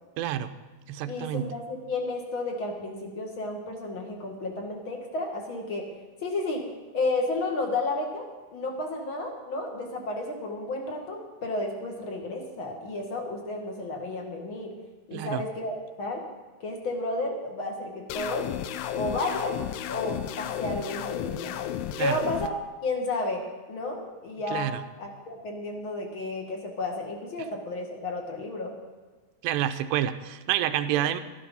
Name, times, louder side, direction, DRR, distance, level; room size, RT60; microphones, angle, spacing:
voice 1, 0.2-0.5 0.9-1.5 15.1-15.4 22.0-22.2 24.5-24.8 29.4-31.2, right 11 dB, 85° right, 10 dB, 2.9 m, -28 dB
voice 2, 1.1-5.9 6.2-6.6 6.9-8.3 8.5-14.7 15.1-16.2 16.6-18.5 18.9-19.5 19.9-21.6 22.0-22.5 22.8-23.4 23.7-24.0 24.2-28.7 31.0-31.1, left 2 dB, 45° left, 2 dB, 1.9 m, -32 dB
sound 1, 18.1-22.5, left 10 dB, 80° left, 2.3 m, -33 dB
13.5 x 13.5 x 5.5 m, 1.3 s
omnidirectional pair, 4.9 m